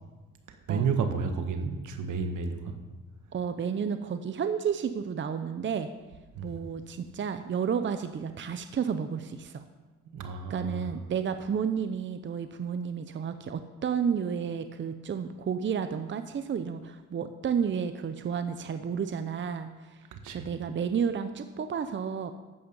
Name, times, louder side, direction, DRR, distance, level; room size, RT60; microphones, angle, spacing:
voice 1, 0.7-2.7 6.3-6.5 10.1-10.9 20.1-20.5, right 5 dB, 80° right, 6 dB, 1.6 m, -31 dB
voice 2, 3.3-5.9 6.4-9.6 10.5-20.0 20.3-22.3, right 7 dB, 40° right, 9 dB, 0.7 m, -31 dB
13.0 x 8.7 x 5.5 m, 1.2 s
cardioid pair, 90°, 30 cm